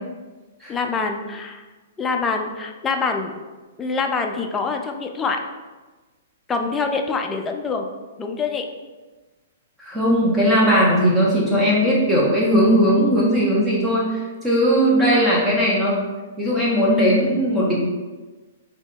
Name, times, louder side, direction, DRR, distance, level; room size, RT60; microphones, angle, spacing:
voice 1, 0.7-1.6 2.0-3.3 3.8-5.4 6.5-7.9 8.2-8.7, left 4 dB, 15° left, 3 dB, 0.3 m, -25 dB
voice 2, 9.8-16.0 16.4-17.7, equal, 10° right, -6 dB, 1.0 m, -18 dB
4.2 x 2.8 x 2.3 m, 1.3 s
hypercardioid pair, 145°, 0 cm